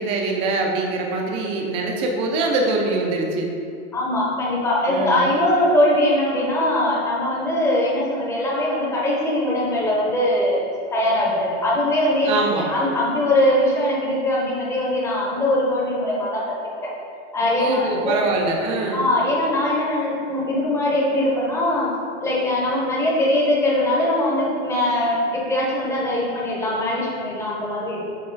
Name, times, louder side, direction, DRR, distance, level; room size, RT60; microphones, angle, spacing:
voice 1, 0.0-3.5 4.9-5.3 12.3-12.7 17.6-19.1, right 2 dB, 15° right, 1 dB, 0.4 m, -23 dB
voice 2, 3.9-16.9 17.3-18.3 18.9-21.9 22.2-28.2, left 1 dB, 10° left, -4 dB, 0.7 m, -21 dB
5.6 x 4.6 x 3.8 m, 2.5 s
supercardioid pair, 160°, 33 cm